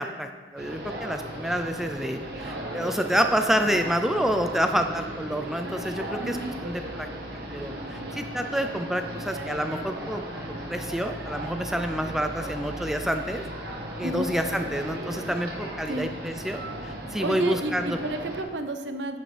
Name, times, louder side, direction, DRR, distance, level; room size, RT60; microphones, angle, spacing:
voice 1, 0.0-6.4 6.6-7.1 7.5-13.4 14.0-18.0, equal, ahead, 6 dB, 0.4 m, -28 dB
sound 1, 0.6-18.4, right 1 dB, 60° right, 1.4 m, -36 dB
voice 2, 17.2-19.2, right 2 dB, 85° right, 7 dB, 0.8 m, -31 dB
10.5 x 7.6 x 3.4 m, 1.5 s
head